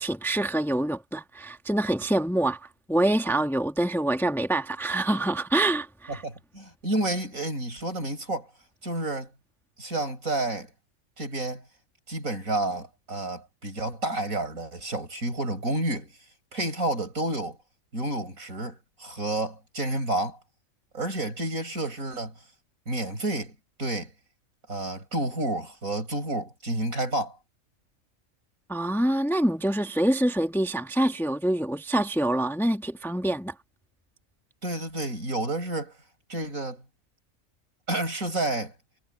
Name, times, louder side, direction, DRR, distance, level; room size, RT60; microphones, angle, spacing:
voice 1, 0.0-6.2 28.7-33.5, right 1 dB, ahead, 1.3 m, -26 dB
voice 2, 6.2-8.5 8.8-9.3 9.8-10.7 11.2-11.6 12.1-16.1 16.5-17.6 17.9-20.4 20.9-22.3 22.9-24.1 24.7-27.4 34.6-35.9 36.3-36.8 37.9-38.7, right 1 dB, 80° right, 7.8 m, -30 dB
omnidirectional pair, 1.4 m